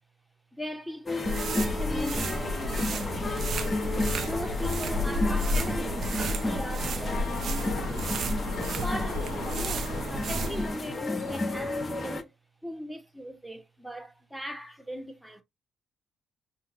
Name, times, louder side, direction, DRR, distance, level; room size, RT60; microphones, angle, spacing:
voice 1, 0.5-3.5 4.2-6.1 6.3-7.8 8.7-12.3 12.6-15.4, equal, 5° right, 1.3 m, -39 dB
sound 1, 1.1-12.2, left 2 dB, 30° left, 0.9 m, -32 dB
sound 2, 1.3-10.8, equal, 55° right, 0.7 m, -31 dB
sound 3, 7.0-10.8, left 9 dB, 70° left, 0.6 m, -43 dB
5.6 x 2.6 x 2.8 m
figure-of-eight pair, 40°, 0 cm